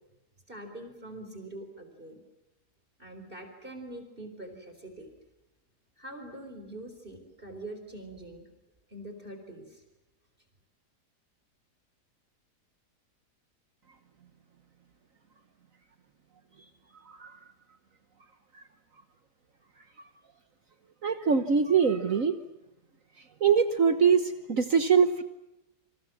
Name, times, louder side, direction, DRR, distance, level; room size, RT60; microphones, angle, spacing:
voice 1, 0.5-2.2 3.0-5.1 6.0-8.4 8.9-9.8, right 1 dB, 30° right, 6 dB, 4.2 m, -44 dB
voice 2, 21.0-22.4 23.4-25.2, right 6 dB, 55° right, 9 dB, 1.5 m, -23 dB
29.5 x 26.5 x 7.4 m, 0.91 s
omnidirectional pair, 1.8 m